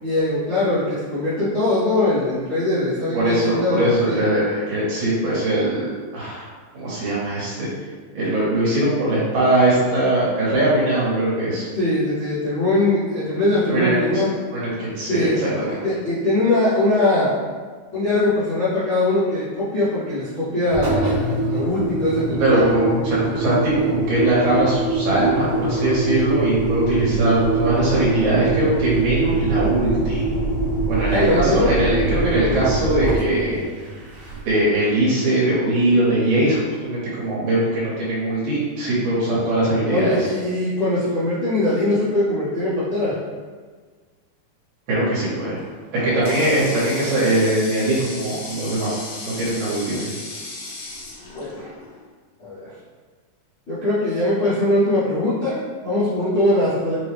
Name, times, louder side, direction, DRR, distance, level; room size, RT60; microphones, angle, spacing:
voice 1, 0.0-3.8 4.0-4.2 11.7-14.3 15.1-15.5 15.8-17.3 17.9-22.7 31.1-31.7 39.9-43.2 51.3-51.7 52.4-52.7 53.7-57.0, left 1 dB, 40° left, -13 dB, 1.1 m, -21 dB
voice 2, 3.1-6.5 6.7-7.7 8.1-11.7 13.7-14.2 14.5-15.8 22.4-30.2 30.9-33.6 34.5-40.3 44.9-45.6 45.9-49.0 49.2-50.1, right 1 dB, 80° right, -8 dB, 3.1 m, -21 dB
Engine, 20.7-34.7, right 3 dB, 65° right, 2.1 m, -23 dB
Water tap faucet, 45.6-52.1, left 2 dB, 85° left, 2.4 m, -36 dB
6.6 x 2.3 x 3.3 m, 1.5 s
omnidirectional pair, 3.8 m